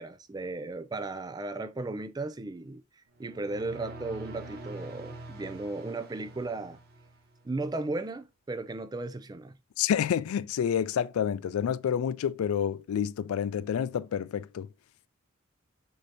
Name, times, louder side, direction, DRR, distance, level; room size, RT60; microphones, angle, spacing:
voice 1, 0.0-2.8 3.2-6.8 7.4-9.5, right 2 dB, 20° right, 0.3 m, -35 dB
sound 1, 3.1-7.5, right 2 dB, 50° right, 0.9 m, -45 dB
voice 2, 9.8-14.7, left 8 dB, 90° left, 0.3 m, -29 dB
6.3 x 2.7 x 2.8 m
head